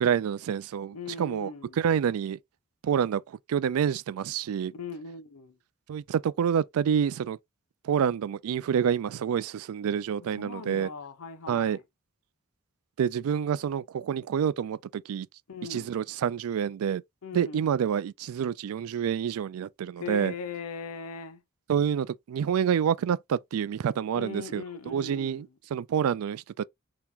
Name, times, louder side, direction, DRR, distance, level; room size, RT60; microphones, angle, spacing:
voice 1, 0.0-1.5 1.8-2.4 2.8-3.2 3.5-4.7 5.9-7.4 7.8-10.9 11.5-11.8 13.0-15.3 15.7-17.0 17.3-20.3 21.7-26.6, right 8 dB, 75° right, 0.3 m, -28 dB
voice 2, 0.9-1.8 4.7-5.6 10.4-11.8 15.5-15.9 17.2-17.7 20.0-21.4 24.1-25.5, left 4 dB, 85° left, 0.7 m, -39 dB
2.9 x 2.9 x 3.5 m
head